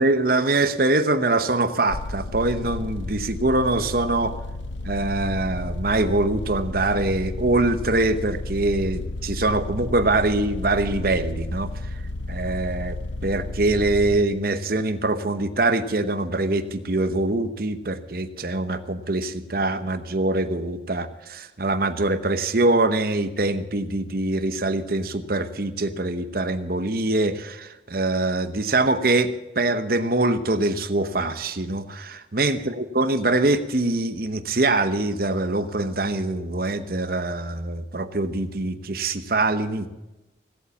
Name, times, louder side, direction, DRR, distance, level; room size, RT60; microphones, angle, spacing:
voice 1, 0.0-4.4 4.8-11.7 12.3-13.0 13.2-39.9, right 2 dB, 55° right, 11 dB, 1.0 m, -23 dB
sound 1, 1.9-14.2, left 2 dB, 80° left, 0.7 m, -32 dB
17.0 x 8.4 x 8.4 m, 1.0 s
head